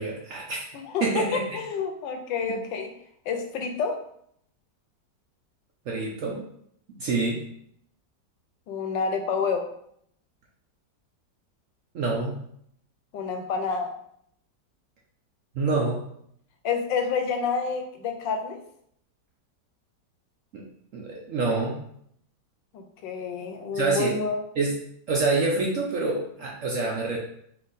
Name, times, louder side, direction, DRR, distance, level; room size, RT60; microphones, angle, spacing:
voice 1, 0.0-0.7 1.0-1.6 5.9-6.4 7.0-7.4 11.9-12.3 15.5-16.0 20.5-20.6 20.9-21.8 23.7-24.2 24.6-24.7 25.1-27.2, right 3 dB, 65° right, -2 dB, 0.8 m, -26 dB
voice 2, 0.7-1.0 1.3-2.9 3.3-4.0 8.7-9.7 13.1-13.9 16.6-18.6 22.7-24.4, left 5 dB, 85° left, 5 dB, 1.4 m, -28 dB
4.4 x 2.6 x 3.9 m, 0.69 s
omnidirectional pair, 1.9 m